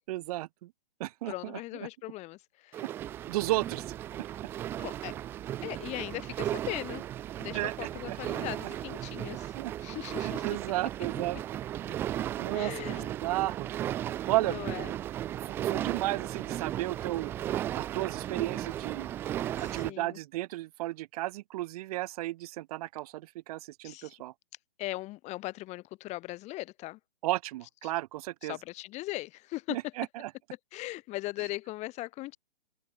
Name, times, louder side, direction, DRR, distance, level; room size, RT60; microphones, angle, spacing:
voice 1, 0.1-0.7 1.0-1.9 3.3-3.8 4.2-4.3 7.5-8.4 9.5-9.7 10.2-11.4 11.9-12.0 12.4-12.7 13.2-13.7 14.3-14.6 15.4-17.3 17.7-19.1 19.6-24.3 27.2-28.6 29.7-30.3, right 17 dB, 40° right, 5.0 m, -33 dB
voice 2, 1.3-2.8 4.8-5.1 5.6-7.0 7.4-10.6 12.5-13.1 14.4-14.9 19.6-20.2 23.8-24.1 24.8-27.0 27.8-27.9 28.4-29.8 30.7-32.4, left 19 dB, 25° left, 3.6 m, -39 dB
sound 1, 2.7-19.9, right 12 dB, 10° right, 0.5 m, -35 dB
open air
hypercardioid pair, 145°, 30 cm